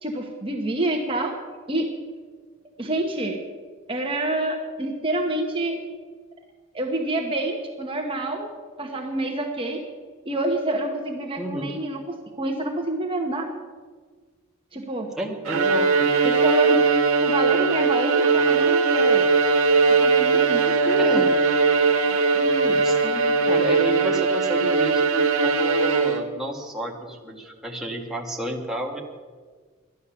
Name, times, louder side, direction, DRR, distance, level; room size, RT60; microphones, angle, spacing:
voice 1, 0.0-1.4 1.7-1.9 2.8-3.4 3.9-5.8 6.7-8.5 8.8-9.8 10.2-13.5 14.7-15.1 16.2-16.8 17.2-19.3 19.9-21.3 22.0-22.2, right 1 dB, 25° right, 2 dB, 1.2 m, -27 dB
voice 2, 11.4-11.7 15.2-16.1 21.0-21.3 22.3-29.0, right 1 dB, ahead, -2 dB, 1.5 m, -31 dB
Bowed string instrument, 15.5-26.5, right 4 dB, 85° right, 1.5 m, -20 dB
13.0 x 11.0 x 7.0 m, 1.5 s
head